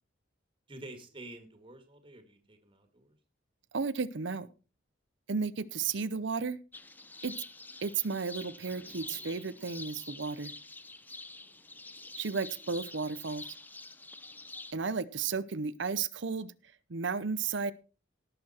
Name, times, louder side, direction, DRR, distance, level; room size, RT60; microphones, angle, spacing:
voice 1, 0.7-3.2, right 1 dB, 25° right, 6 dB, 2.0 m, -49 dB
voice 2, 3.7-4.5 5.3-6.6 7.2-7.4 7.8-10.5 12.2-13.5 14.7-16.5 16.9-17.7, right 5 dB, 65° right, 15 dB, 0.7 m, -33 dB
sound 1, 6.7-14.7, left 2 dB, 10° left, 0.6 m, -47 dB
17.5 x 6.8 x 4.3 m, 0.34 s
head